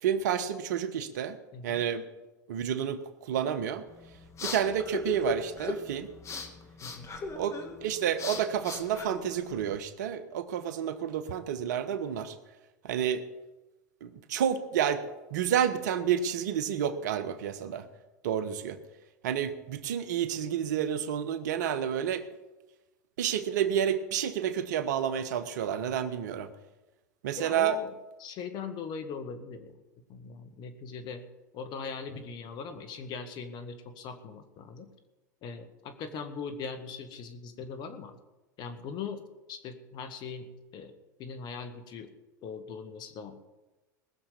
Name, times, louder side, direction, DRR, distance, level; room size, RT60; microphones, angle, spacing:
voice 1, 0.0-1.4 1.6-2.1 2.5-3.8 4.4-6.1 7.3-12.3 12.8-13.2 14.0-15.0 15.3-17.8 18.2-18.8 19.2-22.3 23.2-26.5 27.2-27.8, right 9 dB, 75° right, 11 dB, 1.2 m, -30 dB
voice 2, 1.5-1.8 6.8-7.1 27.4-27.9 28.2-29.7 30.1-31.2 31.5-34.9 35.4-38.2 38.6-39.2 39.5-40.9 41.2-42.1 42.4-43.4, left 5 dB, 50° left, 9 dB, 2.0 m, -40 dB
sound 1, 3.9-9.8, left 4 dB, 30° left, 2.2 m, -39 dB
20.0 x 7.2 x 6.9 m, 1.1 s
hypercardioid pair, 90°, 10 cm